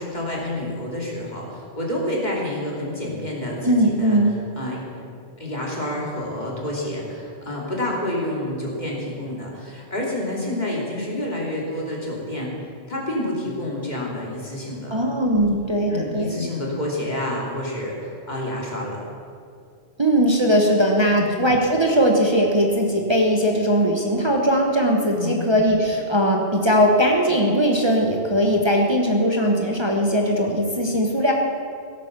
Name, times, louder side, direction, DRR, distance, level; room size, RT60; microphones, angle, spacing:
voice 1, 0.0-5.1 5.4-12.5 12.9-15.0 15.7-19.0 21.1-21.4 25.1-25.4, left 1 dB, 45° left, -3 dB, 3.1 m, -29 dB
voice 2, 3.6-4.4 14.9-16.5 20.0-31.3, equal, 25° right, 0 dB, 1.2 m, -19 dB
16.5 x 8.7 x 6.8 m, 2.3 s
omnidirectional pair, 1.1 m